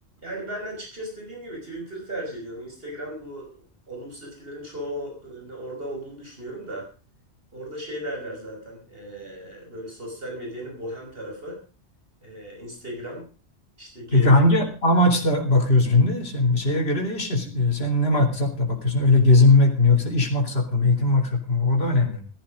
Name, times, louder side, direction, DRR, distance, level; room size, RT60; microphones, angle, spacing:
voice 1, 0.2-6.9 7.5-11.6 12.2-13.3 13.8-14.3, equal, 55° right, 0 dB, 5.9 m, -36 dB
voice 2, 14.1-22.2, left 2 dB, 60° left, 2 dB, 3.3 m, -19 dB
15.0 x 14.0 x 5.1 m, 0.36 s
omnidirectional pair, 1.1 m